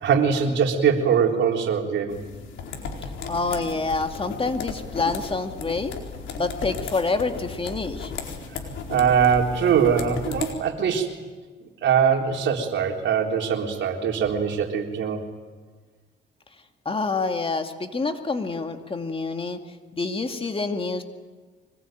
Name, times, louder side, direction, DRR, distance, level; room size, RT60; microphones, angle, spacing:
voice 1, 0.0-2.1 8.9-11.1 11.8-15.2, right 7 dB, 70° right, 2 dB, 3.7 m, -22 dB
sound 1, 2.1-10.5, left 5 dB, 75° left, 4.3 m, -35 dB
voice 2, 3.3-5.9 6.3-8.1 16.9-19.6 19.9-21.0, left 3 dB, 25° left, 6 dB, 2.3 m, -27 dB
25.0 x 20.5 x 9.2 m, 1.4 s
cardioid pair, 90°, 20 cm